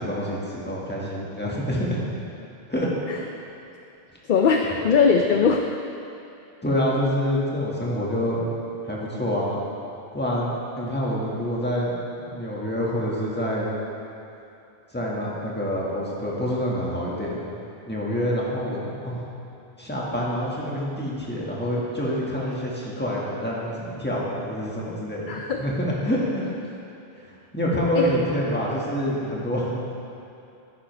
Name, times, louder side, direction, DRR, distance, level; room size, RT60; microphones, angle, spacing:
voice 1, 0.0-2.0 2.7-2.9 3.2-3.3 4.6-4.8 6.6-8.4 8.8-9.6 10.1-11.9 12.2-13.7 14.9-17.4 17.9-19.2 19.8-26.5 27.2-29.9, equal, 10° left, -6 dB, 1.6 m, -27 dB
voice 2, 4.2-5.6 25.3-25.6 27.9-28.1, left 5 dB, 60° left, 3 dB, 0.6 m, -20 dB
10.0 x 9.8 x 3.3 m, 2.7 s
omnidirectional pair, 1.1 m